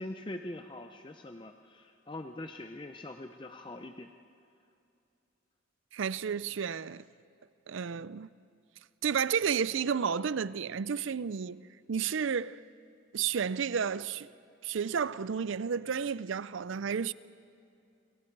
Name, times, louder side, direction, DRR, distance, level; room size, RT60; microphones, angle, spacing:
voice 1, 0.0-4.1, left 1 dB, 25° left, 0.6 m, -43 dB
voice 2, 5.9-7.0 7.7-8.3 9.0-11.6 11.9-12.6 13.1-14.3 14.6-17.1, right 7 dB, 70° right, 0.5 m, -31 dB
29.0 x 23.0 x 4.7 m
head